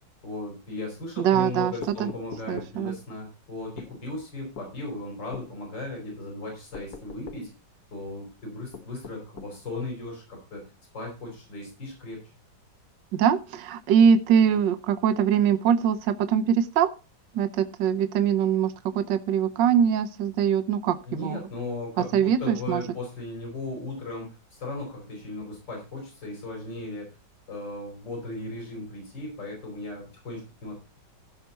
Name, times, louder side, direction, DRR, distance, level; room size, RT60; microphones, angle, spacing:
voice 1, 0.2-7.5 7.9-12.2 21.0-27.1 27.5-30.8, left 2 dB, 80° left, 0 dB, 5.4 m, -37 dB
voice 2, 1.2-1.7 2.0-2.1 2.5-2.9 13.1-16.9 17.3-21.4 22.1-22.8, right 8 dB, 80° right, 10 dB, 1.5 m, -23 dB
sound 1, 1.8-2.8 3.8-4.0 4.6-4.7 5.3-5.5 6.7-7.5 8.7-9.6, left 5 dB, 60° left, 1.8 m, -41 dB
16.0 x 5.8 x 4.1 m, 0.31 s
omnidirectional pair, 2.0 m